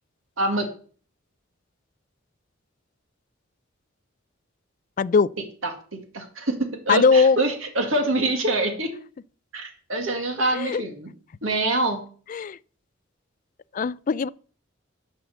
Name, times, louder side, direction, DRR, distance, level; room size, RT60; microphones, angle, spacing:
voice 1, 0.4-0.7 5.6-6.6 6.9-8.9 9.5-11.1 11.4-12.0, right 2 dB, 80° right, 2.0 m, -25 dB
voice 2, 5.0-5.3 6.9-7.4 10.6-10.8 12.3-12.6 13.8-14.3, left 5 dB, 40° left, 0.3 m, -19 dB
10.0 x 5.7 x 6.6 m
head